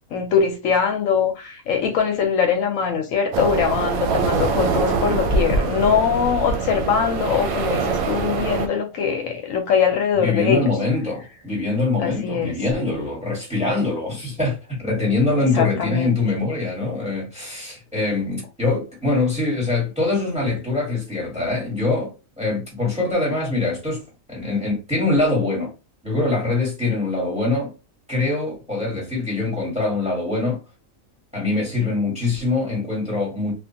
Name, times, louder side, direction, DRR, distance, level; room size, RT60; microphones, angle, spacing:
voice 1, 0.1-10.6 12.0-12.5 15.5-16.1, left 7 dB, 75° left, 1.0 m, -22 dB
sound 1, 3.3-8.7, right 4 dB, 85° right, 1.0 m, -23 dB
sound 2, 5.4-12.4, equal, 30° left, 1.0 m, -44 dB
voice 2, 10.1-24.0 24.3-25.7 26.0-27.7 28.1-30.6 31.3-33.5, left 3 dB, 5° right, 1.4 m, -23 dB
2.5 x 2.4 x 2.7 m
omnidirectional pair, 1.4 m